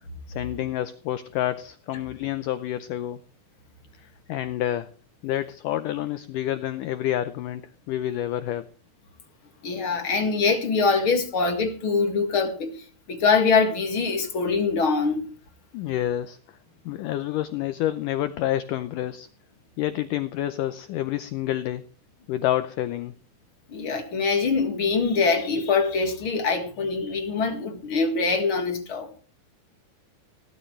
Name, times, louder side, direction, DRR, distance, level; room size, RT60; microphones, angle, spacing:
voice 1, 0.3-3.2 4.3-4.9 5.2-7.6 7.9-8.7 15.7-16.4 16.9-19.3 19.8-21.8 22.3-23.1, left 13 dB, 90° left, 1.8 m, -28 dB
voice 2, 9.6-15.2 23.7-29.1, left 4 dB, 40° left, 2.1 m, -24 dB
18.0 x 12.5 x 3.3 m
omnidirectional pair, 4.7 m